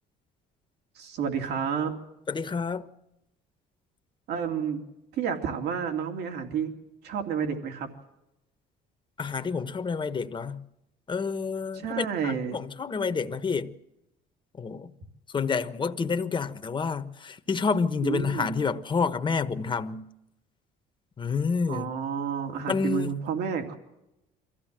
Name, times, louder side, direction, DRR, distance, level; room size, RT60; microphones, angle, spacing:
voice 1, 0.9-2.0 4.3-4.8 5.1-6.7 7.0-7.9 11.7-12.6 18.0-18.7 21.7-23.8, right 7 dB, 80° right, 2.8 m, -30 dB
voice 2, 2.3-2.8 9.2-10.6 11.1-13.7 14.6-14.9 15.3-20.0 21.2-21.9 22.7-23.1, left 5 dB, 30° left, 1.2 m, -29 dB
23.5 x 15.0 x 7.6 m
cardioid pair, 110°, 17 cm